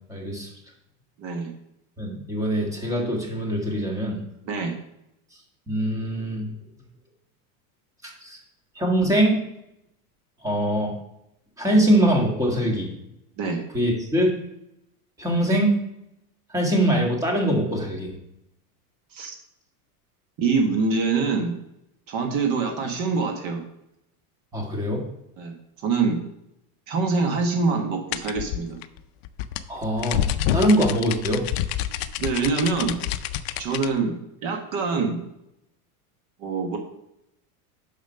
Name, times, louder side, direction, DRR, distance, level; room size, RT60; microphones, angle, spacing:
voice 1, 0.1-0.5 2.0-4.2 5.7-6.5 8.2-8.4 8.7-9.4 10.4-10.9 11.6-12.9 13.7-14.3 15.2-15.8 16.5-18.1 24.5-25.1 29.7-31.4, right 1 dB, 10° right, -1 dB, 1.7 m, -23 dB
voice 2, 1.2-1.5 4.5-4.8 13.4-13.6 19.1-19.4 20.4-21.5 22.1-23.6 25.4-25.5 25.8-26.2 26.9-28.8 32.2-32.9 33.6-35.2 36.4-36.8, right 4 dB, 40° right, 3 dB, 1.4 m, -25 dB
sound 1, 28.1-33.9, left 11 dB, 45° left, 0.5 m, -28 dB
7.1 x 5.9 x 5.7 m, 0.81 s
supercardioid pair, 170°, 44 cm